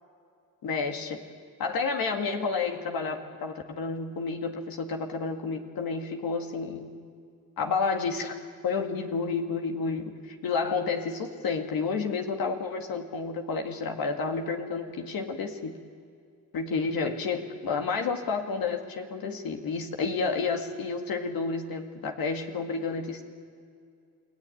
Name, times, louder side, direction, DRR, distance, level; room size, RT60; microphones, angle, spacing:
voice 1, 0.6-1.2 1.6-6.9 7.6-8.4 8.6-15.7 16.5-23.2, left 4 dB, 85° left, 4 dB, 2.1 m, -30 dB
29.0 x 19.0 x 9.2 m, 2.3 s
cardioid pair, 55°, 34 cm